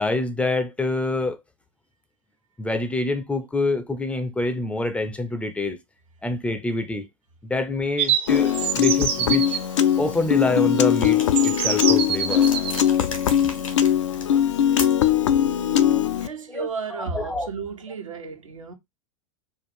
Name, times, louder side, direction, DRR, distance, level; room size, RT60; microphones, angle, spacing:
voice 1, 0.0-1.4 2.6-5.8 6.2-7.1 7.4-9.6 10.0-12.4 16.5-17.5, left 2 dB, 5° left, 0.5 m, -26 dB
sound 1, 8.0-9.6 10.7-10.8 11.3-12.8, right 9 dB, 35° right, 0.7 m, -25 dB
Piano, 8.3-16.3, left 9 dB, 65° left, 0.5 m, -21 dB
sound 2, 10.9-15.2, left 3 dB, 85° left, 1.2 m, -37 dB
voice 2, 16.2-18.7, right 5 dB, 75° right, 1.0 m, -33 dB
4.4 x 2.4 x 3.3 m
figure-of-eight pair, 95°, 17 cm